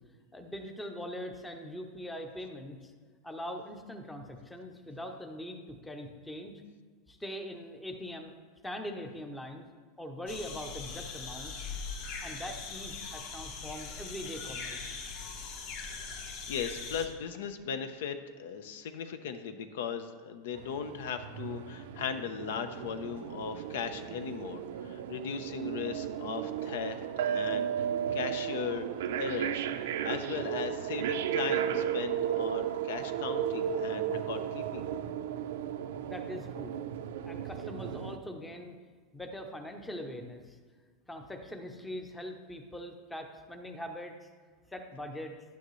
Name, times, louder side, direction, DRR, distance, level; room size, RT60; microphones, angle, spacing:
voice 1, 0.3-2.9 3.2-6.5 7.1-8.3 8.6-9.7 10.0-11.7 12.2-14.9 36.1-36.7 37.3-38.8 39.1-40.6 41.1-44.3 44.7-45.3, equal, 5° left, 4 dB, 0.7 m, -42 dB
sound 1, 10.3-17.1, left 5 dB, 50° left, 1.4 m, -41 dB
voice 2, 16.5-27.0 27.3-28.9 29.2-34.9, left 6 dB, 80° left, 9 dB, 0.8 m, -38 dB
sound 2, 20.5-38.2, right 9 dB, 85° right, 0.6 m, -34 dB
11.5 x 9.3 x 3.2 m, 1.5 s
supercardioid pair, 165°, 0 cm